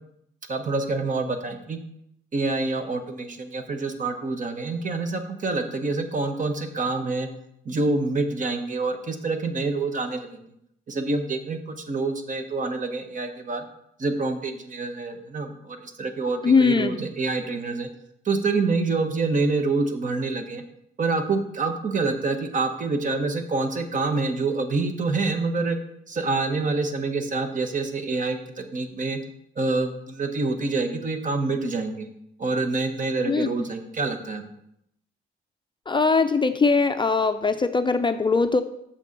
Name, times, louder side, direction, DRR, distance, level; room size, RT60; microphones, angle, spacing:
voice 1, 0.5-1.8 2.3-7.3 7.6-10.5 10.9-13.6 14.0-17.9 18.2-20.6 21.0-25.8 26.1-29.2 29.6-32.1 32.4-34.4, right 3 dB, 40° right, 7 dB, 1.2 m, -27 dB
voice 2, 16.4-16.9 33.3-33.5 35.9-38.6, left 4 dB, 25° left, 8 dB, 0.5 m, -21 dB
6.9 x 6.1 x 5.3 m, 0.75 s
cardioid pair, 90°, 20 cm